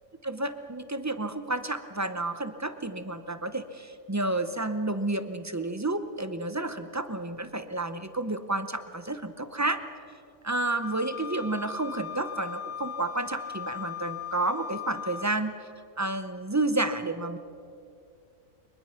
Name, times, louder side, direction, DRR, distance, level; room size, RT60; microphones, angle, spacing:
voice 1, 0.2-9.8 10.4-15.5 16.0-17.4, right 2 dB, 15° right, 10 dB, 0.7 m, -30 dB
Wind instrument woodwind instrument, 10.8-15.3, left 7 dB, 85° left, 1.3 m, -38 dB
23.0 x 21.5 x 5.9 m, 2.5 s
omnidirectional pair, 1.4 m